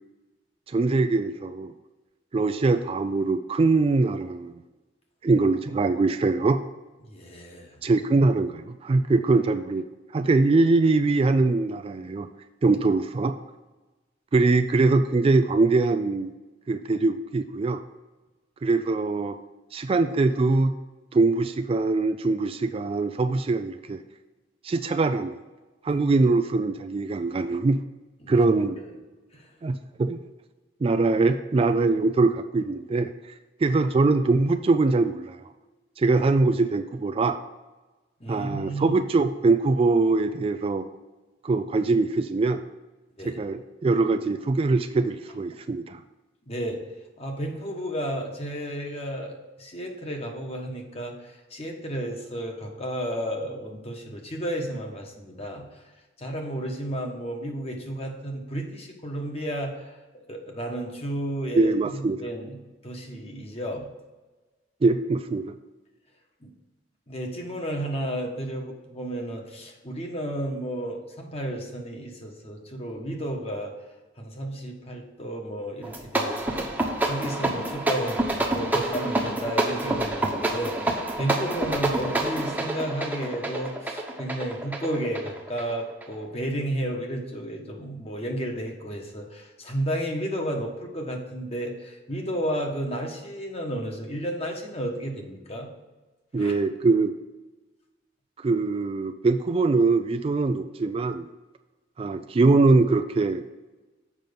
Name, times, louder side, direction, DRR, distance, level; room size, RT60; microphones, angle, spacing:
voice 1, 0.7-1.7 2.3-4.6 5.2-6.6 7.8-9.8 10.1-12.3 12.6-13.3 14.3-16.3 16.7-17.8 18.6-19.4 19.7-20.7 21.1-24.0 24.6-25.4 25.8-27.8 28.3-28.8 29.6-30.2 30.8-33.1 33.6-35.4 36.0-37.4 38.3-40.9 41.4-42.6 43.2-46.0 61.5-62.2 64.8-65.5 96.3-97.1 98.4-101.3 102.0-103.4, right 3 dB, 30° right, 8 dB, 0.3 m, -22 dB
voice 2, 7.1-7.8 28.2-28.4 28.9-29.0 29.3-29.5 38.2-38.9 43.2-43.4 46.5-46.8 47.2-55.7 56.2-60.0 60.3-62.6 62.8-63.9 66.4-66.5 67.1-73.7 74.2-95.7 96.4-96.5, right 1 dB, 35° left, 1 dB, 1.4 m, -32 dB
sound 1, 75.8-86.1, right 2 dB, 10° right, 1.0 m, -28 dB
7.5 x 5.3 x 5.3 m, 1.2 s
head